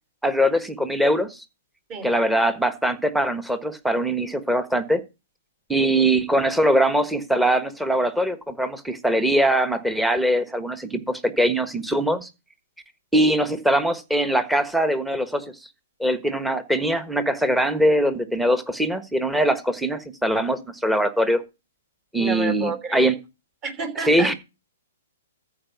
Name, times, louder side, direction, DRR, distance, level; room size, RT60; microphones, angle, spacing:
voice 1, 0.2-1.4 2.0-5.0 5.7-12.3 13.1-15.4 16.0-21.4 22.1-23.1 24.1-24.3, right 1 dB, 5° right, 10 dB, 1.4 m, -22 dB
voice 2, 22.2-23.1 23.6-24.4, right 4 dB, 30° right, 9 dB, 3.2 m, -30 dB
14.0 x 4.8 x 5.9 m, 0.27 s
hypercardioid pair, 135°, 0 cm